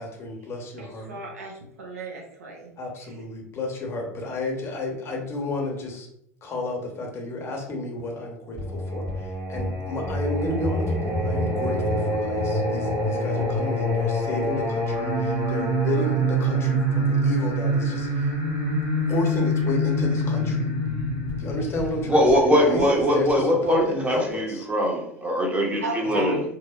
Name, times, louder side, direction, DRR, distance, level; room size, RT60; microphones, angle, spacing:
voice 1, 0.0-1.2 2.8-6.1 6.4-18.3 19.1-20.7 21.4-24.7 26.1-26.3, left 2 dB, 35° left, 0 dB, 0.8 m, -31 dB
voice 2, 0.8-2.7 25.8-26.3, right 3 dB, 75° right, 0 dB, 0.7 m, -35 dB
Singing, 8.6-23.3, equal, 35° right, 1.3 m, -25 dB
voice 3, 22.1-26.4, equal, 15° right, 0 dB, 0.8 m, -22 dB
2.8 x 2.0 x 2.4 m, 0.71 s
figure-of-eight pair, 75°, 8 cm